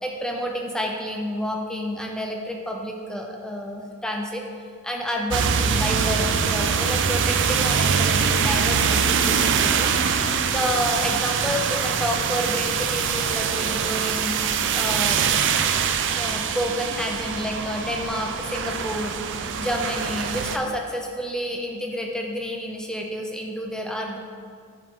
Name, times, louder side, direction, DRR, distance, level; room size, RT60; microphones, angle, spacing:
voice 1, 0.0-4.4 4.8-9.9 10.5-15.2 16.1-19.2 19.6-24.2, equal, 5° left, 0 dB, 0.5 m, -29 dB
sound 1, 5.3-20.6, right 6 dB, 55° right, 0.4 m, -23 dB
sound 2, 17.3-19.7, left 2 dB, 30° left, 1.1 m, -45 dB
11.0 x 4.8 x 3.7 m, 2.1 s
head